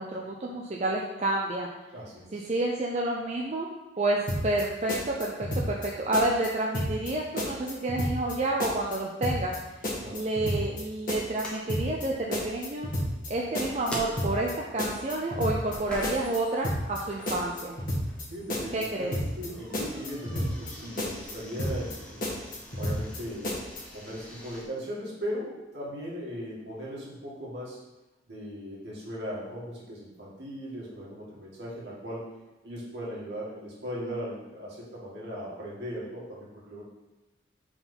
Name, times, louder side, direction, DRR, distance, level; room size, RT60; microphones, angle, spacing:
voice 1, 0.0-1.7 2.3-3.7 4.0-9.5 10.1-12.9 13.3-17.7 18.7-19.2, right 2 dB, 40° right, -1 dB, 0.5 m, -29 dB
voice 2, 1.9-2.5 10.0-10.2 18.3-22.4 22.8-23.6 23.9-27.8 28.3-32.3 32.6-36.8, equal, 70° right, -6 dB, 2.0 m, -38 dB
sound 1, 4.3-4.6 4.9-5.9 6.1-6.5 6.7-7.1 7.4-8.3 8.6-9.0 9.2-9.6 9.8-10.8 11.1-11.4 11.7-12.1 12.3-13.3 13.5-13.9 14.2-14.5 14.8-15.8 16.0-16.4 16.6-17.0 17.3-18.2 18.5-18.9 19.1-19.5 19.7-20.7 21.0-21.3 21.6-22.0 22.2-23.2 23.4-23.8, left 1 dB, 50° left, 1.6 m, -31 dB
sound 2, 9.8-24.6, equal, 5° left, 1.0 m, -45 dB
4.6 x 4.0 x 5.5 m, 1.0 s
head